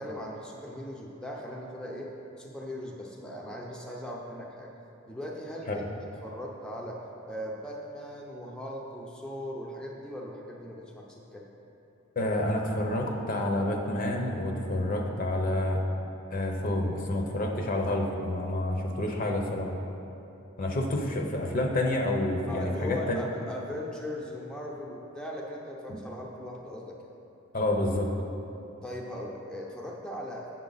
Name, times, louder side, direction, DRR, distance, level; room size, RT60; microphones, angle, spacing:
voice 1, 0.0-4.7 5.1-5.8 6.2-11.5 22.5-27.0 28.8-30.5, equal, 5° left, -2 dB, 0.6 m, -39 dB
voice 2, 12.2-15.8 16.3-19.7 20.6-23.2 25.9-26.0 27.5-28.1, left 1 dB, 45° left, 1 dB, 0.8 m, -28 dB
7.7 x 7.4 x 4.0 m, 2.9 s
head